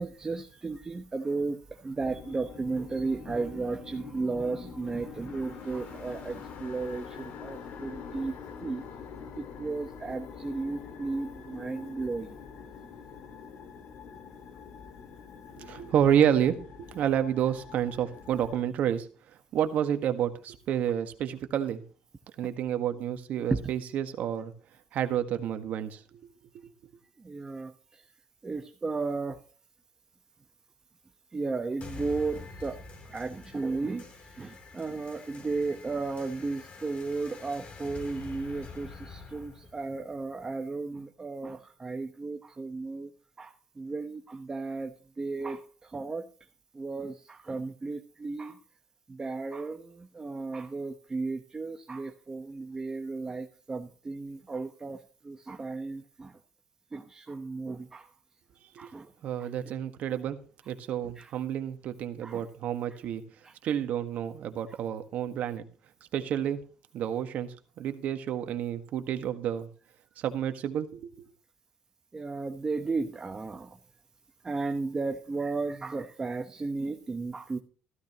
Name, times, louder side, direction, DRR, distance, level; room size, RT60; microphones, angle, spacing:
voice 1, 0.0-8.3 8.6-8.8 9.3-12.4 23.5-23.6 27.2-28.0 28.4-29.4 31.3-32.8 33.1-34.0 34.4-43.1 43.4-46.3 46.7-48.6 49.1-56.3 56.9-58.1 58.8-59.1 59.4-59.5 61.2-61.3 62.2-62.4 63.4-63.5 72.1-73.8 74.4-77.6, right 3 dB, 25° right, 4 dB, 1.1 m, -34 dB
sound 1, 2.0-18.6, left 6 dB, 65° left, 2.1 m, -45 dB
voice 2, 15.6-16.6 16.9-19.1 19.5-21.8 22.4-24.5 24.9-26.2 58.8-58.9 59.2-60.4 60.7-63.2 63.6-65.7 66.1-66.6 66.9-69.7 70.2-71.0, right 9 dB, 65° right, 7 dB, 1.6 m, -29 dB
sound 2, 31.8-40.8, left 4 dB, 50° left, 3.4 m, -47 dB
14.5 x 13.0 x 3.0 m, 0.39 s
cardioid pair, 100°, 3 cm